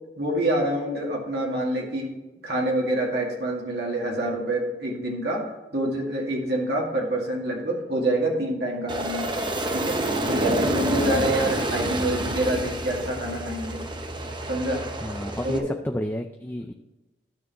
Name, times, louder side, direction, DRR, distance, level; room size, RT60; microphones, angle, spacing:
voice 1, 0.2-2.1 2.4-5.4 5.7-9.4 9.7-13.8 14.5-14.8 15.4-15.7, right 1 dB, 65° right, -2 dB, 2.1 m, -26 dB
Aircraft, 8.9-15.6, right 1 dB, 25° right, 0.9 m, -28 dB
voice 2, 15.0-16.7, equal, 10° left, 4 dB, 0.4 m, -30 dB
12.5 x 6.8 x 3.0 m, 1.1 s
head